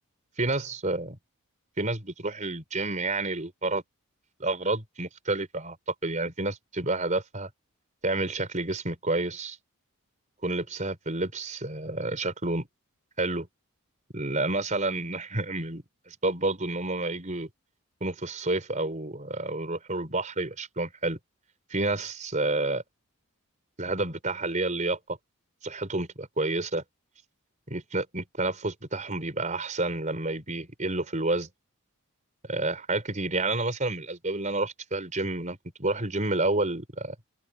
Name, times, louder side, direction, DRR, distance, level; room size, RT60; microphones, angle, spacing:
voice 1, 0.4-1.1 1.8-3.8 4.4-5.8 6.0-7.5 8.0-9.6 10.4-12.7 13.2-13.5 14.1-17.5 18.0-21.2 21.7-22.8 23.8-25.0 25.6-26.8 27.7-31.5 32.5-37.1, right 2 dB, 35° right, 5.0 m, -29 dB
open air
head